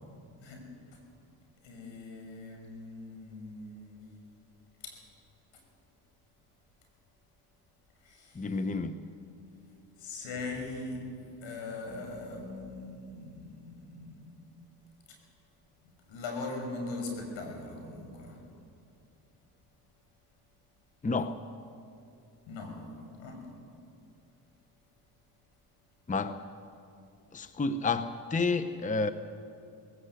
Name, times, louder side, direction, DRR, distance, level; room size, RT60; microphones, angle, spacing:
voice 1, 1.6-4.0 4.8-5.0 5.5-5.6 8.0-8.6 10.0-11.1 11.4-14.4 15.1-15.2 15.8-18.4 22.5-22.8 23.2-23.4, left 3 dB, 80° left, 6.0 m, -41 dB
voice 2, 8.3-9.1 21.0-21.4 26.1-26.4 27.3-29.1, left 3 dB, 15° left, 0.8 m, -30 dB
20.0 x 17.5 x 8.3 m
cardioid pair, 85°, 45 cm